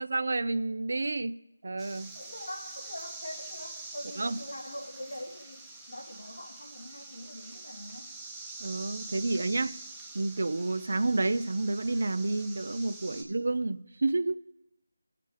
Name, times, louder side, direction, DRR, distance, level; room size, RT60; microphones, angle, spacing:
voice 1, 0.0-1.4 1.6-2.1 4.2-4.4 8.6-9.8 10.1-14.5, right 2 dB, 60° right, 0.4 m, -30 dB
sound 1, 1.8-13.2, right 3 dB, 5° right, 0.8 m, -45 dB
voice 2, 2.1-5.6 5.9-8.1 13.1-13.4, left 1 dB, 90° left, 2.0 m, -43 dB
19.5 x 7.6 x 3.3 m
figure-of-eight pair, 170°, 0 cm